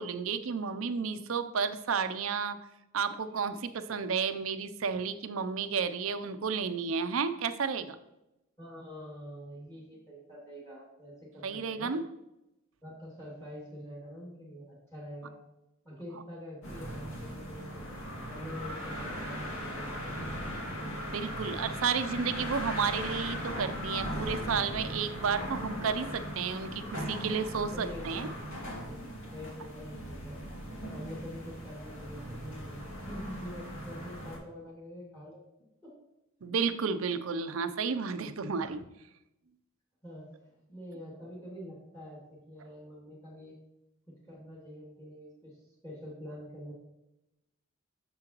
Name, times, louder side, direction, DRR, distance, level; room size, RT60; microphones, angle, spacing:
voice 1, 0.0-2.6 2.9-8.0 11.4-12.0 21.1-28.3 36.4-38.8, right 6 dB, 70° right, 11 dB, 0.5 m, -32 dB
voice 2, 8.6-11.9 12.8-15.4 15.8-18.0 18.3-20.4 27.7-28.0 28.9-29.0 29.3-30.4 30.9-35.4 35.8-36.0 37.1-37.2 40.0-43.6 44.1-45.5 45.8-46.7, equal, 15° left, -5 dB, 2.2 m, -45 dB
sound 1, 16.6-34.4, equal, 65° left, 2.4 m, -39 dB
7.6 x 6.9 x 3.0 m, 0.92 s
head